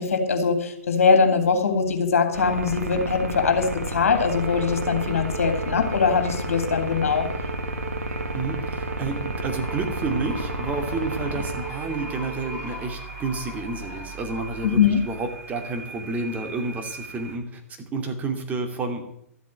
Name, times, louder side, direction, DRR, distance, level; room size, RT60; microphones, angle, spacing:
voice 1, 0.0-7.3 14.6-15.0, left 5 dB, 70° left, 6 dB, 2.7 m, -22 dB
sound 1, 2.3-17.4, right 1 dB, 85° right, 2.1 m, -33 dB
sound 2, 4.3-12.7, right 7 dB, 55° right, 6.2 m, -38 dB
voice 2, 8.3-19.1, right 3 dB, 20° right, 4 dB, 2.6 m, -30 dB
sound 3, 9.4-14.7, left 6 dB, 30° left, 4.5 m, -42 dB
13.0 x 8.4 x 8.4 m, 0.75 s
figure-of-eight pair, 115°, 8 cm